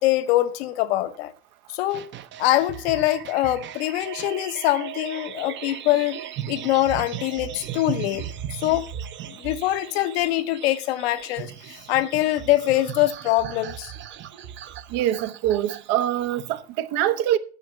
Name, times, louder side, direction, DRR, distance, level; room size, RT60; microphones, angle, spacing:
voice 1, 0.0-1.3 1.7-2.1 2.4-6.2 6.5-8.2 8.5-8.9 9.3-13.9, left 15 dB, 75° left, 1.0 m, -23 dB
sound 1, 1.9-16.6, right 10 dB, 35° right, 0.8 m, -37 dB
voice 2, 14.9-17.4, right 12 dB, 65° right, 1.1 m, -24 dB
9.5 x 6.6 x 5.9 m
supercardioid pair, 105°, 32 cm